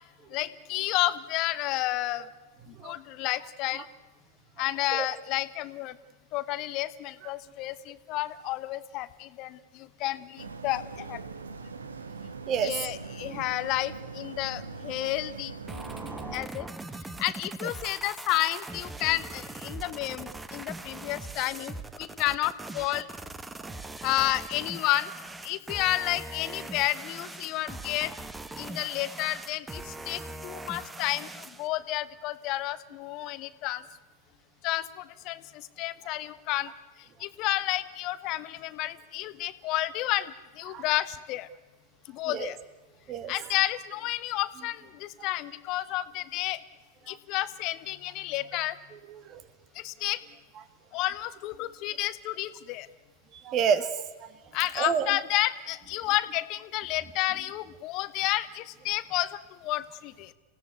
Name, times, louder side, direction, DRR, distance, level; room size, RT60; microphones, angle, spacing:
voice 1, 0.3-2.3 2.8-3.8 4.6-6.0 6.3-11.2 12.6-15.5 16.3-16.7 17.2-23.1 24.0-25.1 25.4-28.1 28.6-33.8 34.6-36.7 37.2-41.5 42.1-42.6 43.3-46.6 47.1-48.8 49.7-50.2 50.9-52.9 54.5-60.3, left 16 dB, 40° left, 15 dB, 0.9 m, -31 dB
sound 1, 10.4-16.4, right 4 dB, 75° right, 1.3 m, -41 dB
sound 2, 15.7-31.7, right 2 dB, 10° right, 1.3 m, -41 dB
voice 2, 30.2-30.6 40.7-40.8 42.2-42.5 43.1-43.3 47.0-47.2 48.9-49.4 53.3-54.3 54.7-55.2, right 7 dB, 35° right, 14 dB, 1.7 m, -30 dB
27.0 x 17.0 x 9.4 m, 1.2 s
figure-of-eight pair, 90°, 0 cm